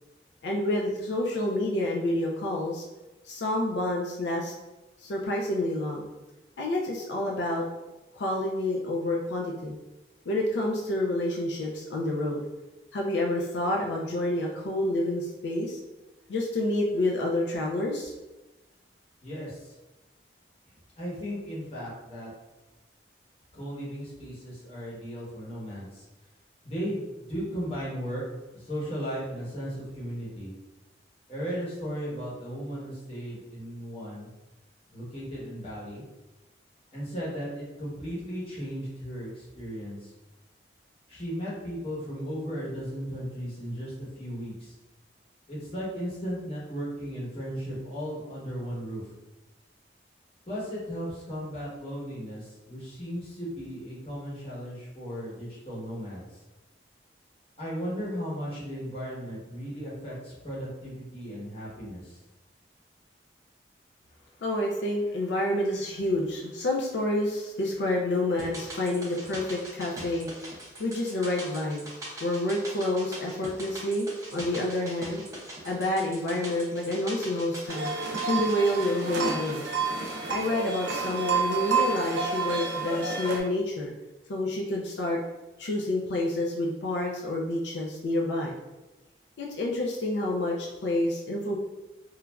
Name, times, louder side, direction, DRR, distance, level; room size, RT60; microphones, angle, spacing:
voice 1, 0.4-2.9 3.2-4.5 5.0-6.1 6.6-7.7 8.1-9.8 10.3-12.4 12.9-15.8 16.3-18.1 64.4-70.3 70.8-71.9 72.2-74.1 74.3-75.2 75.6-77.9 78.2-79.7 80.3-83.9 84.3-85.2 85.6-88.5 89.4-91.6, left 1 dB, 80° left, -1 dB, 0.4 m, -28 dB
voice 2, 19.2-19.7 21.0-22.3 23.5-26.0 26.6-28.2 28.5-30.5 31.3-34.3 34.9-36.0 36.9-40.1 41.1-44.7 45.5-49.1 50.5-56.4 57.6-62.2, equal, 35° left, -6 dB, 0.9 m, -36 dB
sound 1, 68.4-80.7 81.0-81.1, right 1 dB, 20° right, 0.5 m, -42 dB
sound 2, 77.7-83.4, right 5 dB, 85° right, 0.5 m, -29 dB
3.0 x 2.4 x 2.2 m, 1.1 s
head